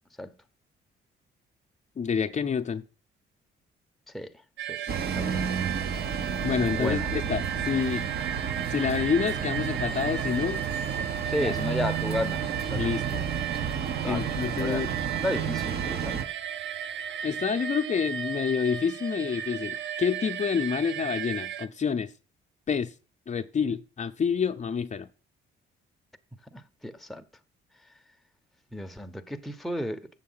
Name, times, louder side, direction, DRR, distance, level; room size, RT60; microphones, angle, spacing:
voice 1, 2.0-2.8 4.8-4.9 6.1-8.0 8.7-10.6 11.4-11.5 12.8-13.2 14.0-14.9 17.2-22.1 22.7-22.9 23.3-25.1, left 6 dB, 35° left, 0.7 m, -28 dB
sound 1, 4.6-21.7, right 10 dB, 70° right, 0.8 m, -35 dB
sound 2, 4.9-16.2, right 7 dB, 55° right, 1.1 m, -31 dB
voice 2, 6.7-7.1 11.2-12.8 14.0-14.3 14.6-14.9 15.2-16.2 26.5-27.2 28.7-30.1, left 1 dB, ahead, 0.8 m, -33 dB
7.2 x 7.0 x 5.6 m
cardioid pair, 90°, 20 cm